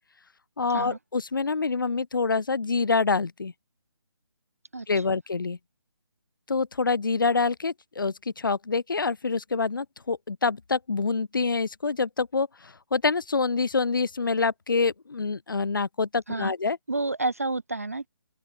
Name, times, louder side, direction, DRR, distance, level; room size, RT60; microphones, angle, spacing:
voice 1, 0.6-3.5 4.9-5.6 6.5-16.8, left 4 dB, 50° left, 1.2 m, -26 dB
voice 2, 4.7-5.2 16.3-16.5 16.9-18.1, right 2 dB, 30° right, 0.5 m, -30 dB
open air
hypercardioid pair, 180°, 15 cm